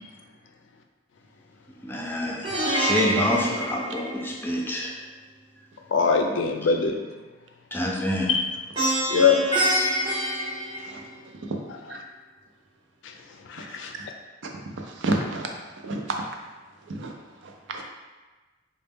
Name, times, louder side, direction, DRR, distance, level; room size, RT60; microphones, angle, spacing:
voice 1, 1.8-4.9 6.7-6.8 7.7-8.3, left 1 dB, 10° left, -2 dB, 0.5 m, -27 dB
Plucked string instrument, 2.4-4.6 8.7-11.4, right 1 dB, 25° right, 0.7 m, -26 dB
voice 2, 5.9-7.0 8.3-8.4 9.1-9.4 13.5-13.9, left 5 dB, 80° left, 4 dB, 0.4 m, -21 dB
voice 3, 14.8-15.5 15.8-16.2 16.9-17.1 17.4-17.8, right 2 dB, 70° right, 2 dB, 0.5 m, -30 dB
4.0 x 2.1 x 3.5 m, 1.2 s
head